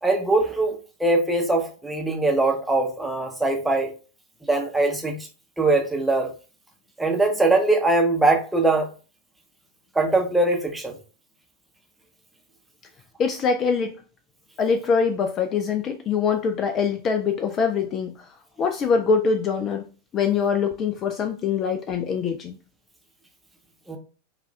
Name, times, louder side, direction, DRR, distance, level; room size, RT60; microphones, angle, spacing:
voice 1, 0.0-3.9 4.5-5.2 5.6-6.3 7.0-8.9 9.9-10.9 23.9-24.0, right 2 dB, 5° right, 0.8 m, -21 dB
voice 2, 13.2-14.0 14.6-18.3 18.6-19.9 20.1-22.6, left 5 dB, 30° left, 0.4 m, -23 dB
4.7 x 2.4 x 3.2 m
figure-of-eight pair, 90°, 0 cm